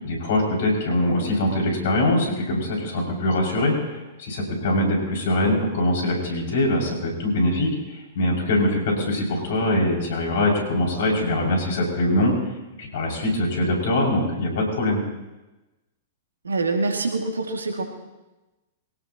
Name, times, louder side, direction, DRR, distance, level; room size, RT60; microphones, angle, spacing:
voice 1, 0.0-12.3 12.8-15.0, left 1 dB, 60° left, -1 dB, 6.0 m, -23 dB
voice 2, 16.4-17.8, right 3 dB, 85° right, 3 dB, 2.2 m, -25 dB
24.0 x 18.0 x 2.9 m, 1.1 s
figure-of-eight pair, 105°, 0 cm